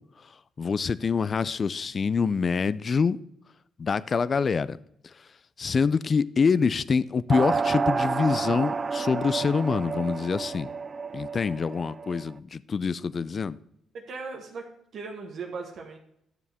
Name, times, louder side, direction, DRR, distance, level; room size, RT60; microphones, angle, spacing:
voice 1, 0.6-3.2 3.8-4.8 5.6-10.7 11.1-13.6, left 5 dB, 40° left, 0.4 m, -25 dB
sound 1, 7.3-12.3, right 5 dB, 35° right, 0.3 m, -30 dB
voice 2, 13.9-16.0, right 4 dB, 65° right, 1.3 m, -38 dB
11.0 x 7.0 x 3.5 m
cardioid pair, 90°, 0 cm